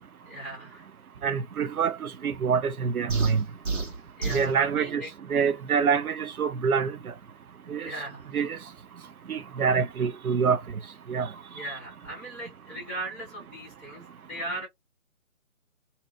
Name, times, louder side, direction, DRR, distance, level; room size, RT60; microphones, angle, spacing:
voice 1, 0.3-0.9 4.2-5.1 5.4-5.5 7.8-8.3 11.5-14.7, right 1 dB, 5° right, 0.7 m, -38 dB
voice 2, 1.2-3.4 4.3-5.0 5.3-6.9 7.7-7.9 8.3-8.6 9.3-10.6 11.1-11.3, right 6 dB, 85° right, 0.6 m, -25 dB
sound 1, 3.1-4.6, right 3 dB, 60° right, 1.4 m, -30 dB
2.8 x 2.0 x 2.3 m
figure-of-eight pair, 160°, 42 cm